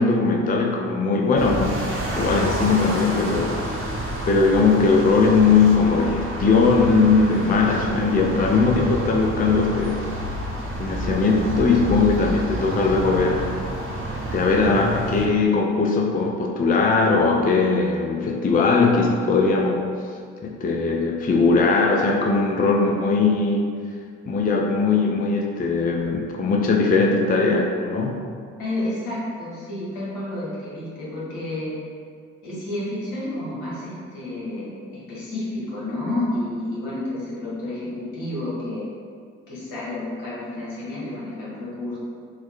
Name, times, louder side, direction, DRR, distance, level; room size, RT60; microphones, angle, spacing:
voice 1, 0.0-1.9 2.2-3.9 4.3-10.1 10.8-13.5 14.3-19.9 20.4-23.7 24.3-28.2, left 4 dB, 25° left, 1 dB, 0.4 m, -20 dB
sound 1, 1.4-15.3, right 1 dB, 40° right, 0.9 m, -29 dB
voice 2, 28.6-31.7 32.4-38.9 39.5-42.0, left 1 dB, 75° left, -7 dB, 1.3 m, -30 dB
3.7 x 2.1 x 3.6 m, 2.1 s
hypercardioid pair, 45°, 33 cm